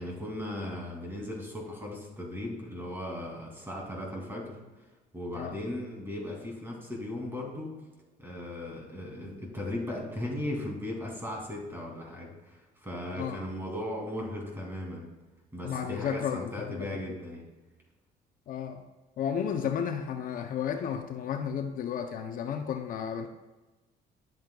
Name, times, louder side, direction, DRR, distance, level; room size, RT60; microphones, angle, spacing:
voice 1, 0.0-4.8 5.1-7.7 8.2-15.1 15.5-17.4, left 1 dB, 15° right, -2 dB, 2.6 m, -37 dB
voice 2, 15.6-16.9 18.5-18.8 19.2-23.3, left 8 dB, 55° left, 5 dB, 0.6 m, -33 dB
10.5 x 7.3 x 2.3 m, 1.2 s
cardioid pair, 110°, 17 cm